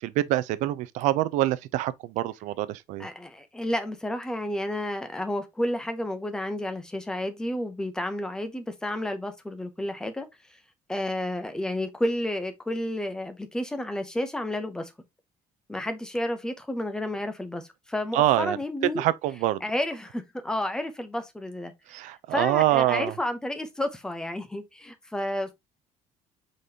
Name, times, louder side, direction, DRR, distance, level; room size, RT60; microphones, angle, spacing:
voice 1, 0.0-3.1 18.1-18.6 19.0-19.6 21.9-23.1, right 15 dB, 75° right, 0.4 m, -25 dB
voice 2, 3.0-10.3 10.9-14.9 15.7-19.0 19.6-21.7 22.3-25.5, left 1 dB, 5° left, 0.6 m, -31 dB
5.0 x 3.9 x 2.7 m
cardioid pair, 170°, 13 cm